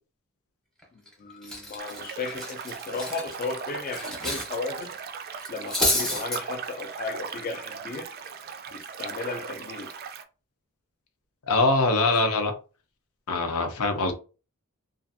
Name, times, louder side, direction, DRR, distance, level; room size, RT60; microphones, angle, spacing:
Cutlery silverware, 0.8-1.1 1.4-4.5 4.8-5.0 5.4-6.4, left 1 dB, ahead, 0.7 m, -29 dB
voice 1, 1.2-4.9 5.5-8.1 8.7-9.9 12.1-12.2, left 3 dB, 40° left, 0.4 m, -35 dB
sound 1, 1.8-10.2, right 6 dB, 45° right, 0.3 m, -38 dB
voice 2, 11.5-12.5 13.3-14.1, left 3 dB, 85° left, 0.6 m, -23 dB
2.4 x 2.4 x 2.5 m
head